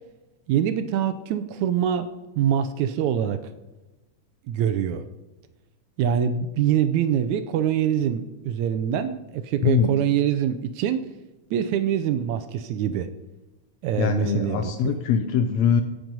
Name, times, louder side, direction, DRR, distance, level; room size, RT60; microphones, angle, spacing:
voice 1, 0.5-2.1 2.4-3.4 4.5-5.1 6.0-11.1 11.5-13.1 13.8-15.0, right 9 dB, 80° right, 1.9 m, -24 dB
voice 2, 9.6-10.0 14.0-15.8, left 7 dB, 80° left, 1.6 m, -22 dB
17.0 x 6.2 x 5.3 m
omnidirectional pair, 3.6 m